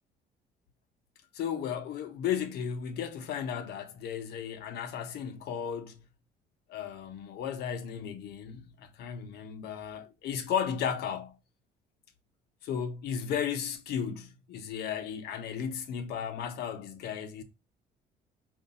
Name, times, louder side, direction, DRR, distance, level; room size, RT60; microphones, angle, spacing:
voice 1, 1.3-6.1 6.7-11.4 12.6-17.4, left 8 dB, 70° left, 0.9 m, -35 dB
4.6 x 2.6 x 4.1 m
cardioid pair, 110°, 17 cm